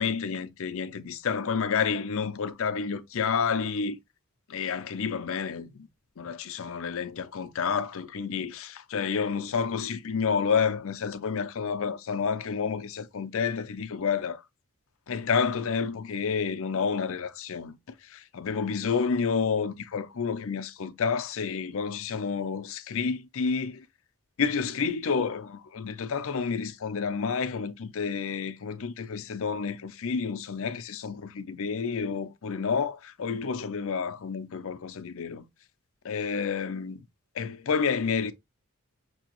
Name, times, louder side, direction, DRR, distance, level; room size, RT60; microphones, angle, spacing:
voice 1, 0.0-4.0 4.5-5.9 6.2-14.4 15.1-17.8 18.0-23.9 24.4-35.4 36.0-37.0 37.3-38.3, left 5 dB, 65° left, 0.5 m, -29 dB
6.0 x 2.8 x 2.9 m
head